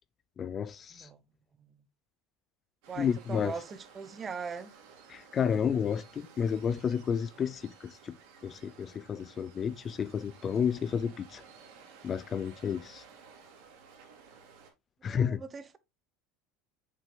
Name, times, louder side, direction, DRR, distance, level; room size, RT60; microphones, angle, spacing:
voice 1, 0.4-1.1 3.0-3.5 5.1-8.2 8.4-11.4 12.0-13.0 15.0-15.4, left 7 dB, 35° left, 0.4 m, -31 dB
Waves surf, 2.8-14.7, right 6 dB, 70° right, 2.7 m, -55 dB
voice 2, 2.9-4.7 15.0-15.8, right 5 dB, 25° right, 0.9 m, -41 dB
7.5 x 6.1 x 2.2 m
supercardioid pair, 110°, 0 cm